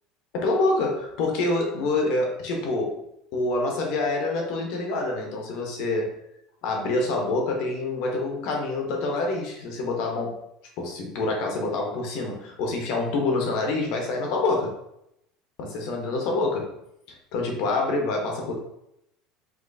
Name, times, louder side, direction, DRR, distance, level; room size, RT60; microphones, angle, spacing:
voice 1, 0.3-3.0 3.3-6.1 6.6-10.4 10.8-14.8 15.6-16.8 17.1-18.5, left 2 dB, 60° left, 1 dB, 1.1 m, -26 dB
5.3 x 2.9 x 2.7 m, 0.80 s
cardioid pair, 160°, 0 cm